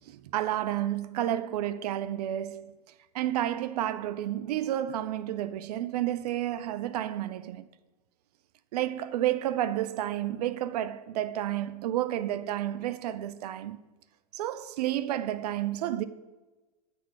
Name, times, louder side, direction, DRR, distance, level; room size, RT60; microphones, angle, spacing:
voice 1, 0.1-2.7 3.1-7.6 8.7-13.8 14.3-16.1, right 12 dB, 70° right, 0.5 m, -31 dB
9.2 x 4.4 x 4.7 m
hypercardioid pair, 115°, 21 cm